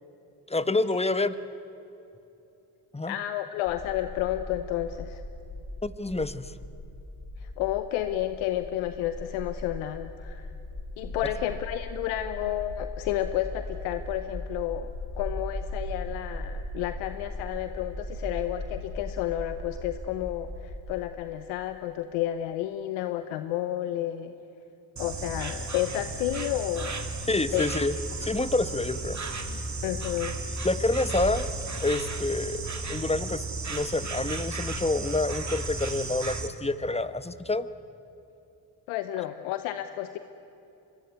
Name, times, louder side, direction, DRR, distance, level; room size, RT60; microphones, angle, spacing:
voice 1, 0.5-1.4 2.9-3.2 5.8-6.5 27.3-28.0 28.2-29.2 30.6-31.5 31.8-37.7, left 2 dB, 15° left, 13 dB, 1.2 m, -28 dB
voice 2, 3.1-5.2 7.4-10.5 11.0-24.3 25.0-27.0 27.5-27.7 29.8-30.4 38.9-40.2, left 13 dB, 90° left, 10 dB, 0.8 m, -31 dB
sound 1, 3.7-20.8, left 1 dB, 40° left, 7.4 m, -38 dB
Insect, 25.0-36.5, right 3 dB, 35° right, 2.6 m, -34 dB
24.5 x 21.5 x 9.6 m, 2.9 s
hypercardioid pair, 45°, 47 cm